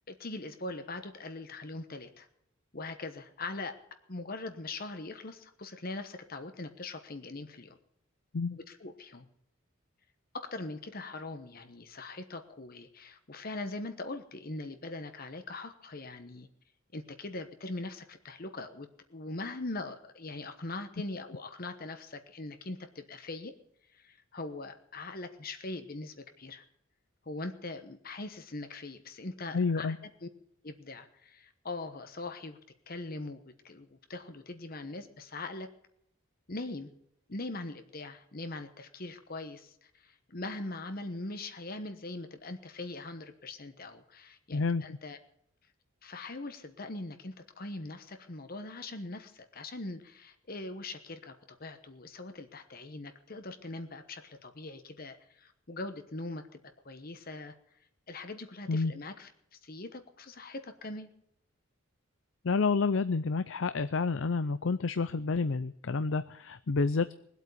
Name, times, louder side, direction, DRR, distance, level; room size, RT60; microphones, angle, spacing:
voice 1, 0.1-2.3 2.7-3.8 4.1-7.8 8.5-9.3 10.3-16.5 16.9-23.5 23.9-26.6 27.3-29.9 30.2-30.3 30.6-32.6 32.9-35.7 36.5-36.9 37.3-45.2 46.0-51.3 51.6-56.5 56.8-57.5 58.1-61.1, left 2 dB, 45° left, 8 dB, 1.1 m, -41 dB
voice 2, 29.5-30.0 44.5-44.8 58.7-58.9 62.4-67.1, left 4 dB, 65° left, 13 dB, 0.5 m, -29 dB
20.5 x 8.3 x 8.4 m, 0.76 s
head